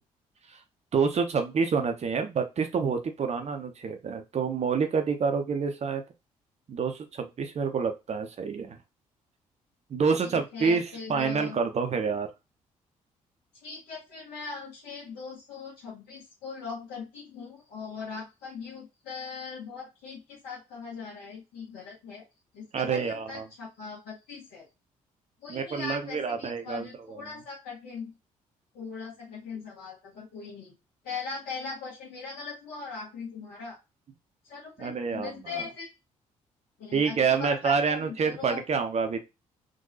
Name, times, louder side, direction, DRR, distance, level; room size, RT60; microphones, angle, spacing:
voice 1, 0.9-6.0 6.7-8.8 9.9-12.3 22.7-23.5 25.5-26.9 34.8-35.3 35.5-35.6 36.9-39.2, right 5 dB, 35° right, 6 dB, 0.7 m, -27 dB
voice 2, 10.2-11.6 13.6-22.3 22.5-24.6 25.4-28.1 28.7-30.7 31.0-33.8 34.4-35.9 36.8-38.6, left 5 dB, 60° left, -5 dB, 1.5 m, -40 dB
3.8 x 2.7 x 2.7 m, 0.25 s
figure-of-eight pair, 45°, 18 cm